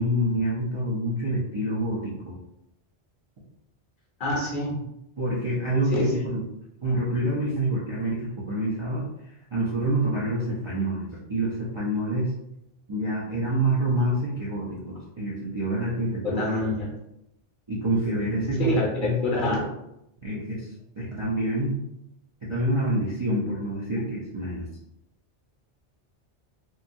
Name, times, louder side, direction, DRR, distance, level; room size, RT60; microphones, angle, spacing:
voice 1, 0.0-2.3 5.2-6.4 6.8-9.1 9.5-12.3 12.9-16.4 17.7-18.7 19.0-19.6 20.2-20.7 21.0-21.7 22.4-24.7, right 1 dB, 35° right, -7 dB, 0.5 m, -27 dB
voice 2, 4.2-4.8 5.9-6.2 16.2-16.9 18.6-19.6, left 2 dB, 50° left, -4 dB, 0.8 m, -26 dB
3.0 x 2.3 x 2.6 m, 0.84 s
omnidirectional pair, 1.2 m